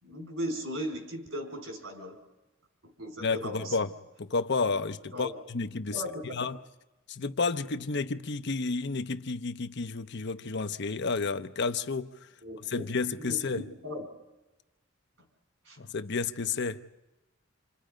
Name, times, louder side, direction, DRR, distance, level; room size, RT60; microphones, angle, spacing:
voice 1, 0.0-2.2 2.8-3.9 5.1-5.4 5.9-6.4 12.4-12.9 13.2-14.1 15.6-15.8, equal, 75° right, 4.8 m, -38 dB
voice 2, 3.2-3.9 4.2-5.9 6.3-6.6 7.1-12.1 12.7-13.6 15.8-16.8, left 4 dB, 60° left, 0.8 m, -31 dB
28.0 x 27.5 x 5.2 m
head